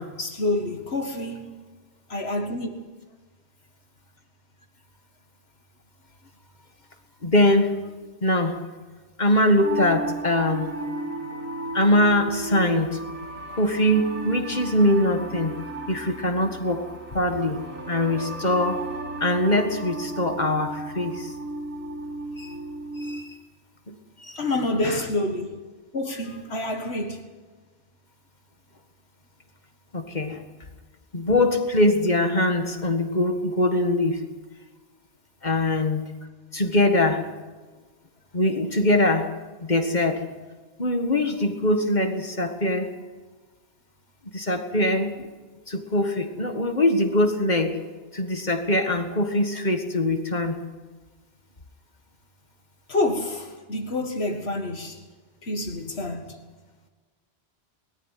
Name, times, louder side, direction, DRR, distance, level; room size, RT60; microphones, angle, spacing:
voice 1, 0.2-1.6 2.1-2.7 24.4-25.6 25.9-27.2 35.5-35.6 52.9-55.0 55.4-56.4, left 2 dB, 80° left, 2.1 m, -28 dB
voice 2, 7.2-7.8 8.2-8.7 9.2-10.8 11.7-13.1 13.5-15.6 15.9-18.9 19.2-21.3 22.4-22.5 23.0-23.3 23.9-24.4 24.8-25.0 29.9-30.4 31.1-34.3 35.4-36.1 36.5-37.3 38.3-40.3 40.8-43.0 44.3-45.3 45.7-50.7, left 1 dB, 45° left, 1.9 m, -23 dB
sound 1, 9.6-23.2, right 2 dB, 15° right, 3.1 m, -35 dB
21.5 x 14.0 x 9.3 m
omnidirectional pair, 1.1 m